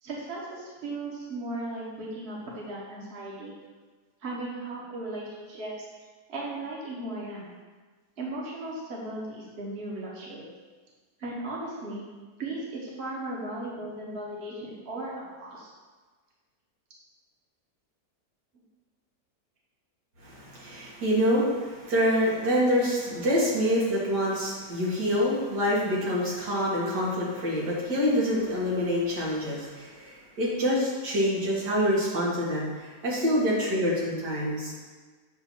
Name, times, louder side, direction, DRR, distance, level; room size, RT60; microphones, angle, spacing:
voice 1, 0.0-3.5 4.2-5.9 6.3-7.4 8.2-10.5 11.2-12.0 12.4-15.7, right 2 dB, 40° right, -4 dB, 1.3 m, -36 dB
voice 2, 20.2-34.7, equal, 80° right, -6 dB, 2.2 m, -26 dB
7.8 x 2.7 x 5.9 m, 1.4 s
omnidirectional pair, 1.8 m